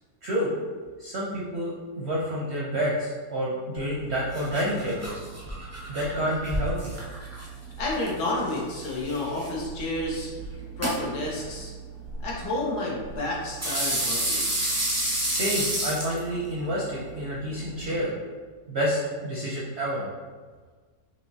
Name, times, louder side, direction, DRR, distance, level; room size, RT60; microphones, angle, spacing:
voice 1, 0.2-0.6 1.0-5.2 5.9-6.9 15.3-18.1 18.7-20.1, equal, 60° right, -5 dB, 0.7 m, -29 dB
sound 1, 3.8-18.0, right 1 dB, 25° right, 0.3 m, -32 dB
voice 2, 7.8-10.3 10.8-11.7 12.2-14.5, left 2 dB, 75° left, -4 dB, 1.6 m, -30 dB
5.1 x 3.0 x 2.7 m, 1.5 s
omnidirectional pair, 1.7 m